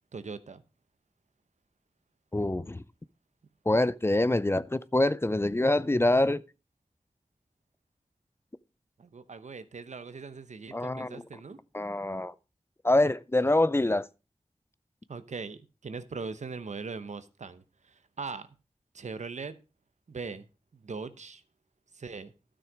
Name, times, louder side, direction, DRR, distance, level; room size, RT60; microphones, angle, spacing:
voice 1, 0.1-0.6 9.0-11.6 15.1-18.5 18.9-19.6 20.1-20.5 20.7-21.4 21.9-22.3, right 4 dB, 80° right, 0.8 m, -40 dB
voice 2, 2.3-2.8 3.7-6.4 10.7-11.2 11.7-12.3 12.8-14.1, left 1 dB, 20° left, 0.4 m, -25 dB
12.5 x 6.3 x 4.8 m
wide cardioid pair, 50°, 12 cm